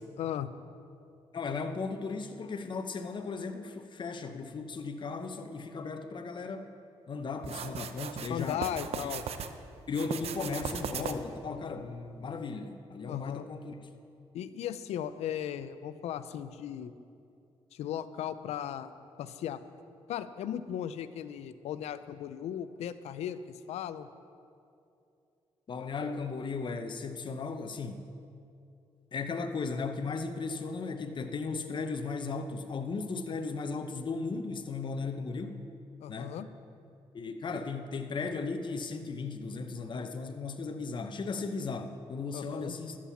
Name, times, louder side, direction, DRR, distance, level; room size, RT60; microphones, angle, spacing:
voice 1, 0.2-0.5 8.3-9.2 13.1-13.4 14.3-16.9 17.7-18.9 19.2-19.6 20.1-24.1 36.0-36.5 42.3-42.7, left 10 dB, 85° left, 13 dB, 0.5 m, -37 dB
voice 2, 1.3-6.8 7.1-8.7 9.0-9.1 9.9-13.9 25.7-28.1 29.1-35.7 36.1-36.4 37.1-43.0, left 4 dB, 45° left, 7 dB, 0.8 m, -36 dB
sound 1, 7.4-9.5 9.9-11.4, right 7 dB, 70° right, 0.7 m, -38 dB
13.0 x 7.5 x 7.2 m, 2.6 s
cardioid pair, 75°, 11 cm